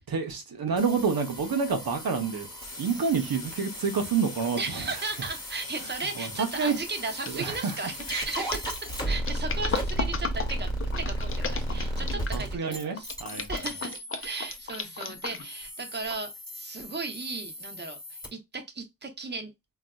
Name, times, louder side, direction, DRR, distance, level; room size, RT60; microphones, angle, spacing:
voice 1, 0.1-2.5 2.8-4.6 6.2-6.8 7.3-7.7 11.7-13.5, right 5 dB, 85° right, 0.8 m, -28 dB
sound 1, 0.8-18.3, equal, 10° left, 1.2 m, -35 dB
voice 2, 4.6-8.7 9.0-10.7 11.0-13.1 13.5-19.5, right 3 dB, 30° right, 0.8 m, -36 dB
sound 2, 6.0-6.3 6.6-12.4 13.0-15.6 16.1-16.2, left 5 dB, 40° left, 0.5 m, -35 dB
3.8 x 2.4 x 2.2 m
wide cardioid pair, 80°, 35 cm